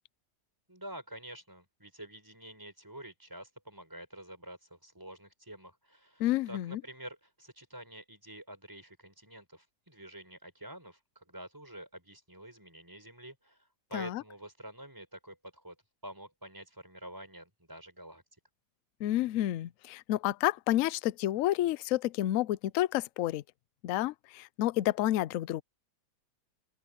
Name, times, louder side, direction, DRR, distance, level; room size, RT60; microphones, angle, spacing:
voice 1, 0.7-15.8 16.0-18.2, right 1 dB, 10° right, 6.4 m, -48 dB
voice 2, 6.2-6.8 13.9-14.2 19.0-23.4 23.8-25.6, left 14 dB, 70° left, 0.8 m, -30 dB
open air
omnidirectional pair, 1.8 m